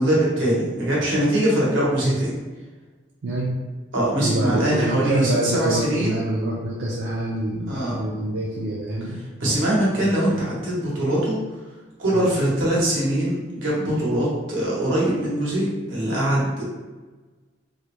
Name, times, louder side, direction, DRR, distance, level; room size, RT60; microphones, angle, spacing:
voice 1, 0.0-2.3 3.9-6.3 7.7-8.0 9.4-11.4 12.0-16.6, right 1 dB, 80° right, -6 dB, 0.9 m, -22 dB
voice 2, 3.2-3.6 4.2-9.2 10.0-10.1 12.1-12.3, right 1 dB, 60° right, -5 dB, 0.3 m, -26 dB
2.4 x 2.1 x 3.0 m, 1.3 s
head